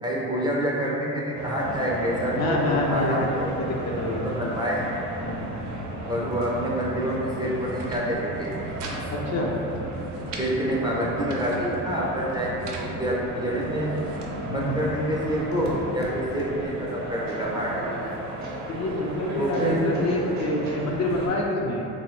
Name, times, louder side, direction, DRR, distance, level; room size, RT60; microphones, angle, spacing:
voice 1, 0.0-3.5 4.2-4.8 6.0-8.5 10.4-13.9 14.4-18.1 19.4-19.8, equal, 10° right, -5 dB, 0.4 m, -27 dB
sound 1, 1.3-21.3, right 1 dB, 50° right, 0.7 m, -34 dB
voice 2, 2.3-3.7 4.0-4.5 5.2-5.5 9.1-9.5 14.5-14.8 18.7-21.9, left 1 dB, 50° left, -2 dB, 0.5 m, -27 dB
sound 2, 7.6-8.0 8.4-9.0 9.3-9.4 9.7-10.5 11.0-11.6 12.3-12.9 13.5-14.3, right 3 dB, 85° right, 0.5 m, -42 dB
3.2 x 2.0 x 3.0 m, 2.9 s
supercardioid pair, 75°, 36 cm